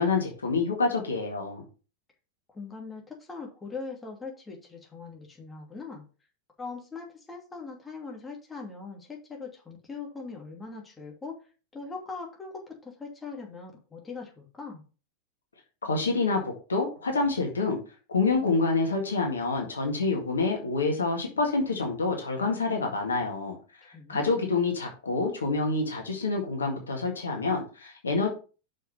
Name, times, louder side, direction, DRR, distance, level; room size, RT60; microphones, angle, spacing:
voice 1, 0.0-1.6 15.8-17.8 18.1-23.6 24.1-28.3, left 3 dB, 70° left, 2 dB, 1.9 m, -27 dB
voice 2, 2.5-6.0 6.6-11.4 11.7-14.8 23.9-24.4, left 4 dB, 15° left, 0 dB, 2.7 m, -41 dB
6.5 x 5.4 x 5.4 m, 0.35 s
figure-of-eight pair, 90°, 0 cm